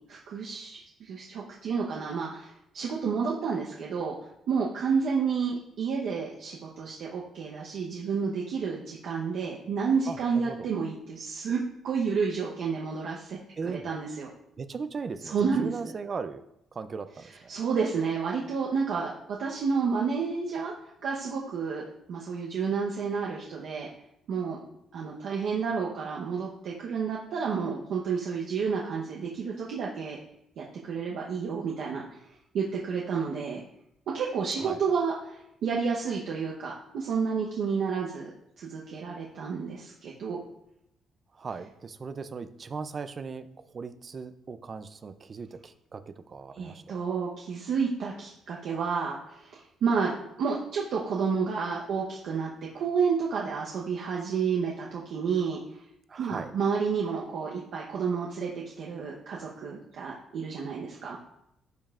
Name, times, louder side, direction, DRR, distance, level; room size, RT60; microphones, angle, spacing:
voice 1, 0.1-4.1 4.5-13.4 13.6-14.3 15.2-15.7 17.5-19.1 19.4-20.7 21.0-23.9 24.3-24.6 24.9-30.2 30.6-32.0 32.5-33.6 34.1-38.3 38.6-40.4 46.5-50.1 50.4-52.5 52.7-55.6 56.2-61.2, right 5 dB, 70° right, -3 dB, 0.9 m, -30 dB
voice 2, 10.1-10.7 13.6-13.9 14.6-16.4 16.7-17.3 34.6-34.8 41.3-43.5 43.7-47.0 56.1-56.5, right 5 dB, 35° right, 11 dB, 0.4 m, -38 dB
10.5 x 5.4 x 2.5 m, 0.80 s
cardioid pair, 140°, 0 cm